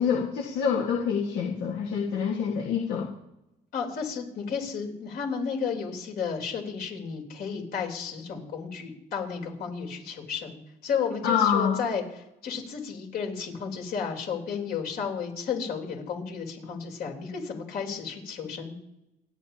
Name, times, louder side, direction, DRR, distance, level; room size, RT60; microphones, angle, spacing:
voice 1, 0.0-3.1 11.2-11.8, left 7 dB, 85° left, -2 dB, 1.7 m, -26 dB
voice 2, 3.7-12.0 12.4-18.8, left 6 dB, 65° left, 1 dB, 3.7 m, -33 dB
28.5 x 10.5 x 2.9 m, 0.88 s
cardioid pair, 110°, 17 cm